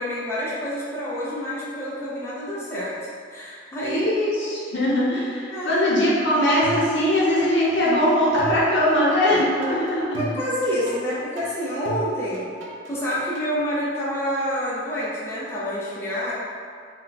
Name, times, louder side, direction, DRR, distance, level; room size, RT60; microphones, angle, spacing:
voice 1, 0.0-2.9 3.3-4.1 5.5-5.8 10.2-12.5 12.9-16.3, equal, 15° left, -9 dB, 0.5 m, -28 dB
voice 2, 3.8-10.2, left 1 dB, 85° left, -7 dB, 0.8 m, -21 dB
sound 1, 6.6-7.5 7.8-13.5, right 2 dB, 85° right, 0.4 m, -36 dB
2.2 x 2.2 x 3.8 m, 2.1 s
head